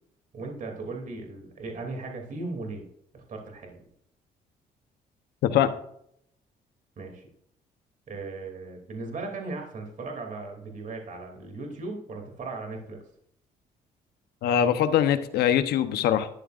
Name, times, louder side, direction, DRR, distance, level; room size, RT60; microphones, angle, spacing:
voice 1, 0.3-2.9 3.1-3.9 7.0-7.2 8.1-13.0, right 3 dB, 55° right, 2 dB, 2.8 m, -37 dB
voice 2, 5.4-5.7 14.4-16.3, left 9 dB, 85° left, 10 dB, 0.9 m, -22 dB
12.0 x 10.5 x 2.5 m, 0.70 s
cardioid pair, 85°, 16 cm